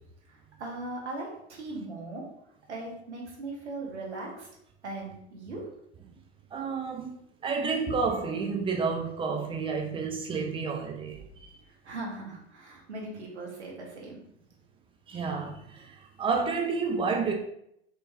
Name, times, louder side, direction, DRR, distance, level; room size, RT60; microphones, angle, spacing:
voice 1, 0.3-2.2 2.7-4.5 4.8-5.7 11.8-14.2, right 2 dB, 80° right, 1.4 m, -39 dB
voice 2, 6.5-11.5 15.1-17.3, right 4 dB, 15° right, 0.5 m, -30 dB
4.9 x 3.0 x 2.4 m
hypercardioid pair, 95°, 33 cm